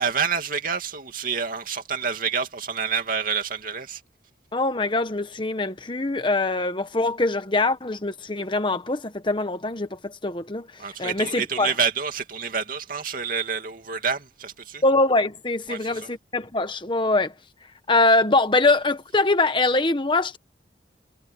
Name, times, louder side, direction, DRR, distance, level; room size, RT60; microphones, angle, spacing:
voice 1, 0.0-4.0 10.8-14.8 15.7-16.1, right 6 dB, 50° right, 2.7 m, -28 dB
voice 2, 4.5-11.7 14.8-17.3 17.9-20.4, left 2 dB, 30° left, 1.3 m, -23 dB
head